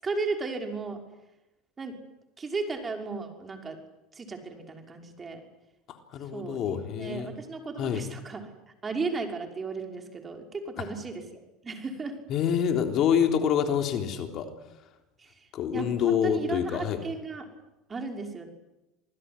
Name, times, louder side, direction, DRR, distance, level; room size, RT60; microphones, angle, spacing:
voice 1, 0.0-1.0 1.8-1.9 2.4-3.8 4.1-5.4 6.3-8.5 8.8-11.2 11.6-12.2 15.2-15.4 15.7-17.5 17.9-18.5, right 4 dB, 25° right, 4 dB, 5.8 m, -35 dB
voice 2, 5.9-7.3 7.8-8.0 10.8-10.9 12.3-14.5 15.5-17.0, left 8 dB, 50° left, 5 dB, 3.5 m, -27 dB
27.0 x 19.5 x 9.9 m, 0.99 s
hypercardioid pair, 95°, 0 cm